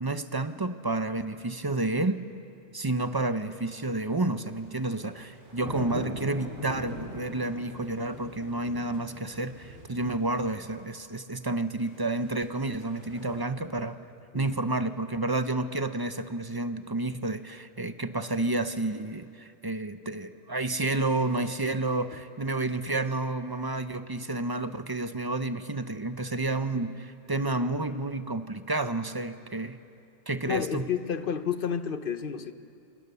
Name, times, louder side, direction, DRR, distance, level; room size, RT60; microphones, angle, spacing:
voice 1, 0.0-2.2 2.7-14.0 14.3-29.8 30.3-30.9, right 2 dB, 25° right, 10 dB, 0.7 m, -30 dB
sound 1, 4.5-10.8 11.8-13.5, equal, 85° right, 4.6 m, -42 dB
voice 2, 30.5-32.5, left 7 dB, 55° left, 10 dB, 1.1 m, -30 dB
28.0 x 25.0 x 6.9 m, 2.6 s
omnidirectional pair, 1.1 m